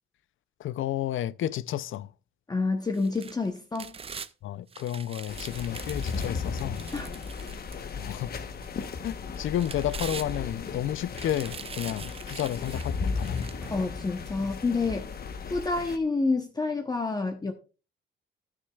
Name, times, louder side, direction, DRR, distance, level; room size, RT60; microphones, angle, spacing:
voice 1, 0.6-2.1 4.4-6.8 8.0-8.3 9.0-13.5, left 12 dB, 80° left, 0.5 m, -31 dB
voice 2, 2.5-4.0 6.9-7.1 13.7-15.1 15.5-17.5, left 3 dB, 20° left, 0.8 m, -28 dB
sound 1, 2.9-4.3 4.7-8.1 8.6-8.7 9.4-10.7 11.1-13.7 14.3-14.4, right 6 dB, 30° right, 0.4 m, -43 dB
sound 2, 5.3-16.0, left 5 dB, 50° left, 1.0 m, -35 dB
sound 3, 11.4-11.9 12.9-13.0 13.6-14.6, equal, 5° right, 3.9 m, -49 dB
13.0 x 9.7 x 2.3 m
wide cardioid pair, 150°, 20 cm